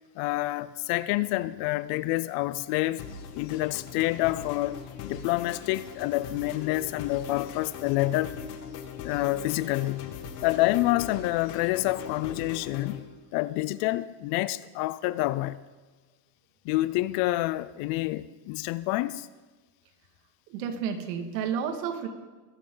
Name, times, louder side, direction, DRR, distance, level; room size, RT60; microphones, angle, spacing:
voice 1, 0.2-3.0 3.4-8.4 9.0-10.1 10.4-13.0 13.3-15.6 16.7-19.3, left 18 dB, 50° left, 0.5 m, -28 dB
sound 1, 3.0-13.0, left 7 dB, 75° left, 2.0 m, -40 dB
voice 2, 20.5-22.1, right 7 dB, 75° right, 2.2 m, -31 dB
22.0 x 11.0 x 3.9 m
supercardioid pair, 135°, 50 cm